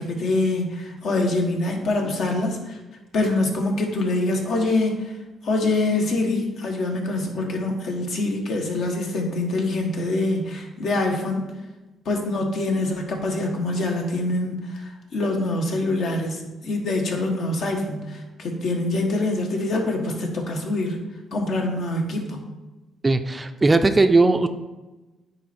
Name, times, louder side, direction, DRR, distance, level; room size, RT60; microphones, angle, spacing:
voice 1, 0.0-2.8 3.1-5.1 5.4-11.5 12.0-21.0 21.3-22.5, left 2 dB, 65° left, 1 dB, 1.3 m, -25 dB
voice 2, 23.0-24.5, right 3 dB, 20° right, 9 dB, 0.4 m, -18 dB
9.4 x 3.2 x 4.4 m, 1.1 s
cardioid pair, 90°, 0 cm